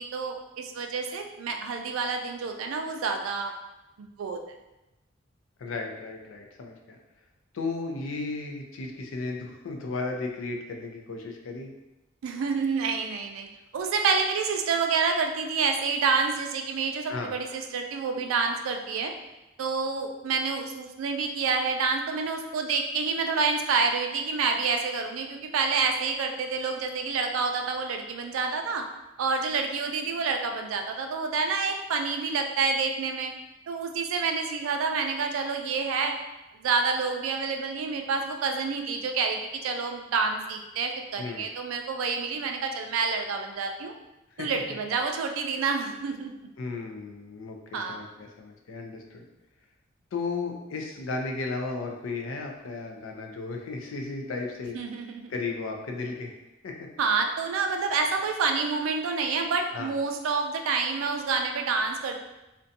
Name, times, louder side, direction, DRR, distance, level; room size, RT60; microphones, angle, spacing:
voice 1, 0.0-3.5 4.0-4.4 12.2-13.5 13.7-19.1 19.6-28.9 29.2-33.3 33.7-36.2 36.5-43.9 44.4-46.3 47.7-48.0 54.7-55.3 57.0-62.2, right 4 dB, 90° right, 4 dB, 0.3 m, -28 dB
voice 2, 5.6-7.0 7.5-11.7 17.1-17.3 41.2-41.5 44.3-44.5 46.6-49.2 50.1-54.8 55.3-56.4 56.6-56.7 59.7-59.9, left 3 dB, 75° left, 2 dB, 0.4 m, -34 dB
2.5 x 2.2 x 2.6 m, 0.98 s
head